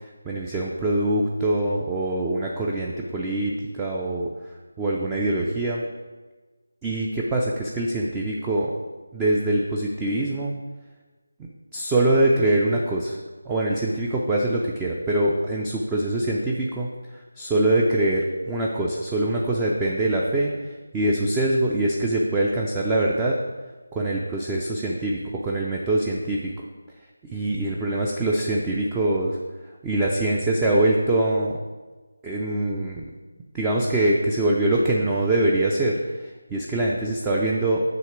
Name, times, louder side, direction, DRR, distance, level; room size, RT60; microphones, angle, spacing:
voice 1, 0.3-5.8 6.8-8.7 9.1-10.5 11.7-13.2 13.5-23.4 23.9-26.5 27.2-29.4 29.8-31.6 32.2-33.0 33.5-37.8, right 1 dB, 10° right, -2 dB, 0.4 m, -24 dB
7.7 x 2.9 x 5.9 m, 1.3 s
figure-of-eight pair, 160°, 0 cm